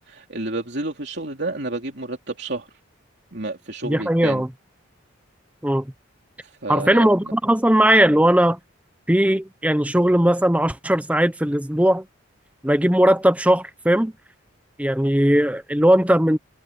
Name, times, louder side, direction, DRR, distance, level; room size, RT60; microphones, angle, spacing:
voice 1, 0.1-2.7 3.3-4.4 6.4-7.3, right 2 dB, 55° right, 3.3 m, -30 dB
voice 2, 3.8-4.5 5.6-5.9 6.7-8.6 9.1-12.0 12.6-14.1 14.8-16.4, right 1 dB, 5° right, 0.9 m, -18 dB
head